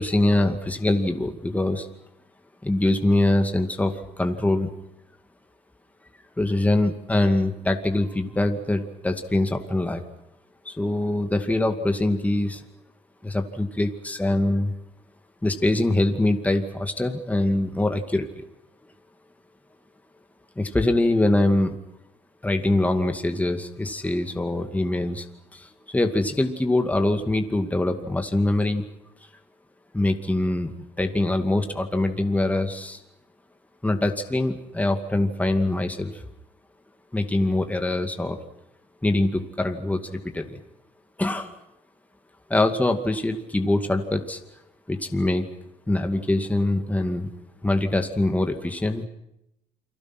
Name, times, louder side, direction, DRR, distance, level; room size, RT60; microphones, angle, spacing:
voice 1, 0.0-1.9 2.6-4.7 6.4-10.0 10.7-12.6 13.2-14.7 15.4-18.4 20.6-21.7 22.4-25.3 25.5-28.8 29.9-30.7 31.0-33.0 33.8-36.2 37.1-38.4 39.0-40.6 41.2-41.5 42.5-44.4 44.9-45.5 45.9-47.3 47.6-49.1, left 2 dB, 10° left, 5 dB, 2.4 m, -23 dB
29.5 x 24.0 x 6.2 m, 0.84 s
cardioid pair, 110°, 17 cm